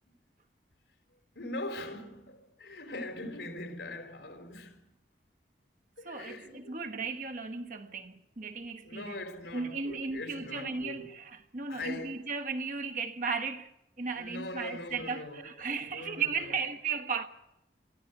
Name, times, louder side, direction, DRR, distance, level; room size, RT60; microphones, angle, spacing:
voice 1, 1.1-4.8 6.0-6.8 8.8-11.1 11.7-12.2 14.1-16.6, left 2 dB, 85° left, 4.0 m, -42 dB
voice 2, 6.0-9.2 9.5-17.3, right 5 dB, 45° right, 1.2 m, -36 dB
22.0 x 14.5 x 9.3 m
head